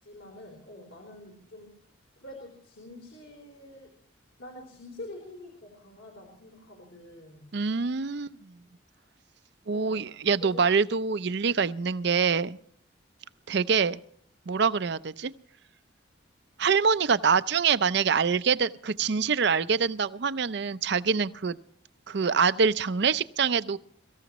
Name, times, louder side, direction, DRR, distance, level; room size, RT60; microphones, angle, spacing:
voice 1, 0.0-1.7 2.2-3.9 4.4-7.5 9.7-10.1 10.4-10.7, left 1 dB, 70° left, 0 dB, 4.0 m, -46 dB
voice 2, 7.5-8.5 9.7-12.6 13.5-14.0 14.5-15.3 16.6-21.6 22.1-23.8, right 5 dB, 55° right, 15 dB, 0.5 m, -25 dB
23.5 x 14.5 x 3.0 m, 0.63 s
head